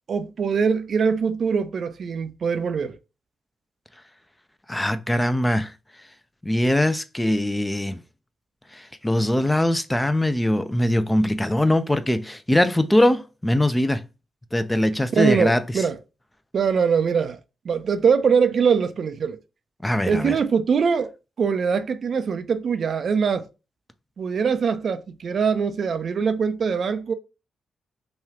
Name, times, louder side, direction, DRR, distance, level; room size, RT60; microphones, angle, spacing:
voice 1, 0.1-3.0 15.1-16.0 16.5-17.4 17.6-19.4 20.1-21.1 21.4-23.5 24.2-27.1, right 6 dB, 55° right, 0.4 m, -22 dB
voice 2, 4.7-5.7 6.4-8.0 8.7-14.0 14.5-15.6 19.8-20.3, left 1 dB, 15° left, 0.4 m, -21 dB
3.0 x 2.3 x 2.9 m
hypercardioid pair, 40°, 0 cm